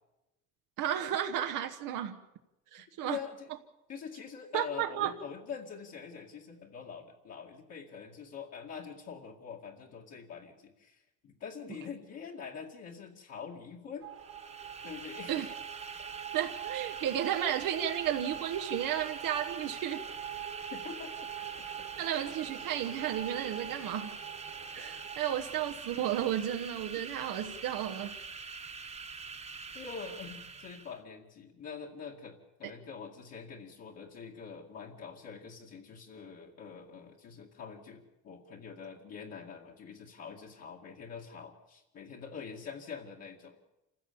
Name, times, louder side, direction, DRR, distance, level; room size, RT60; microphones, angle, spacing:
voice 1, 0.8-2.2 2.7-3.2 4.5-5.1 15.3-15.5 16.3-20.0 22.0-24.2 24.7-28.2, right 10 dB, 85° right, 1.3 m, -33 dB
voice 2, 3.0-3.5 3.9-14.1 14.8-15.5 20.7-21.1 29.7-43.6, left 6 dB, 50° left, 2.4 m, -45 dB
sound 1, 14.0-25.2, right 11 dB, 45° right, 1.7 m, -44 dB
sound 2, 14.1-31.0, right 4 dB, 20° right, 1.3 m, -45 dB
27.5 x 15.5 x 7.1 m
cardioid pair, 155°, 32 cm